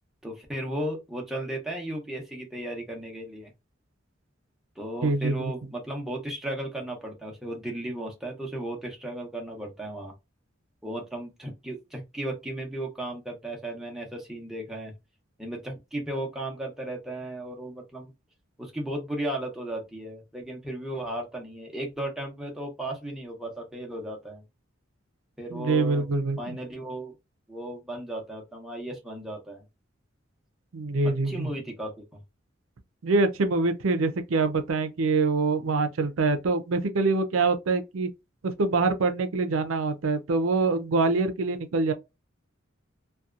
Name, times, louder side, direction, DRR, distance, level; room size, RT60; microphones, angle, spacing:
voice 1, 0.2-3.5 4.8-10.1 10.8-14.9 15.4-18.1 18.6-24.4 25.4-26.1 26.4-27.1 27.5-29.6 31.0-32.2, right 1 dB, ahead, 0.7 m, -35 dB
voice 2, 5.0-5.5 25.5-26.6 30.7-31.5 33.0-38.1 38.6-41.9, right 3 dB, 90° right, 0.5 m, -25 dB
2.7 x 2.3 x 2.3 m
head